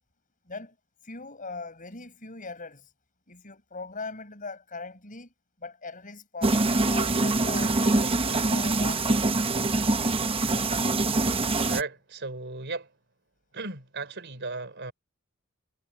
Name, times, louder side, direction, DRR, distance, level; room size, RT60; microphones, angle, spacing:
voice 1, 0.5-0.8 1.0-2.9 3.3-5.3 5.6-10.1 10.5-10.7, left 3 dB, 40° left, 6.3 m, -40 dB
sound 1, 6.4-11.8, right 2 dB, 25° right, 1.0 m, -24 dB
voice 2, 11.7-12.9 13.5-14.9, right 3 dB, 55° right, 4.0 m, -35 dB
head